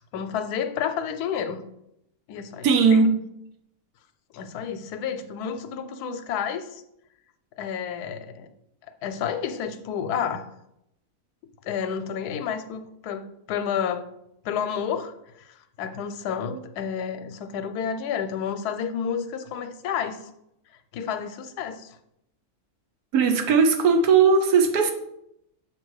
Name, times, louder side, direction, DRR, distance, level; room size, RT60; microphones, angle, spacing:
voice 1, 0.0-1.6 2.3-3.0 4.3-6.8 7.6-8.5 9.0-10.5 11.6-14.1 14.4-20.2 20.9-22.0, left 7 dB, 90° left, 9 dB, 1.1 m, -30 dB
voice 2, 2.6-3.1 23.1-24.9, right 5 dB, 80° right, 5 dB, 1.3 m, -18 dB
7.0 x 2.8 x 4.7 m, 0.80 s
omnidirectional pair, 1.6 m